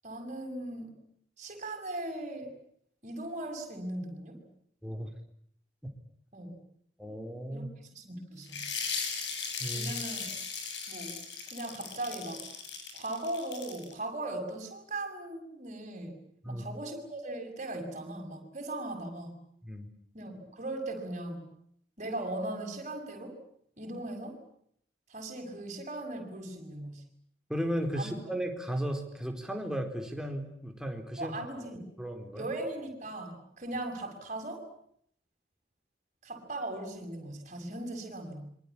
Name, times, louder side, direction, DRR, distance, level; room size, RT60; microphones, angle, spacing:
voice 1, 0.0-1.0 1.4-2.5 3.0-4.4 6.3-6.6 7.5-7.6 8.0-8.7 9.7-10.2 10.9-11.2 11.5-12.5 12.9-19.4 20.1-21.6 22.0-23.4 23.8-24.4 25.1-27.0 28.0-28.1 31.2-31.8 32.3-34.7 36.2-38.5, right 1 dB, 40° right, 4 dB, 7.3 m, -38 dB
voice 2, 7.0-7.7 9.6-9.9 16.4-16.7 19.6-19.9 27.5-31.4 32.0-32.5, equal, 5° right, 4 dB, 4.2 m, -35 dB
sound 1, 8.5-13.9, left 5 dB, 65° left, 7.3 m, -38 dB
26.5 x 25.0 x 8.6 m, 0.68 s
head